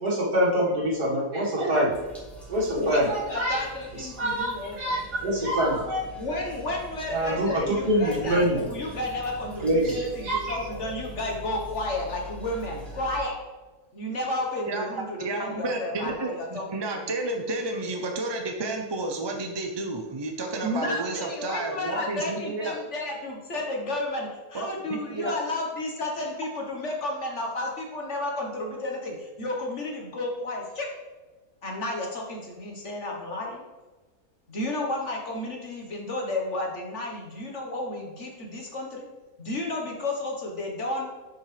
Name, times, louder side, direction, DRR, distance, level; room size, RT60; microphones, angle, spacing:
voice 1, 0.0-1.9 2.5-3.6 4.0-6.1 7.1-8.6 9.6-10.8, equal, 75° right, -4 dB, 2.5 m, -25 dB
sound 1, 1.9-13.2, right 1 dB, ahead, 1.8 m, -43 dB
voice 2, 2.8-5.0 6.2-13.4 13.9-16.6 16.9-17.0 20.6-30.9 31.6-33.6 34.5-39.1 39.4-41.1, left 2 dB, 50° left, 0 dB, 1.7 m, -32 dB
voice 3, 14.7-22.7 24.5-25.3, right 2 dB, 30° right, 3 dB, 0.4 m, -31 dB
10.5 x 6.0 x 3.4 m, 1.2 s
omnidirectional pair, 1.7 m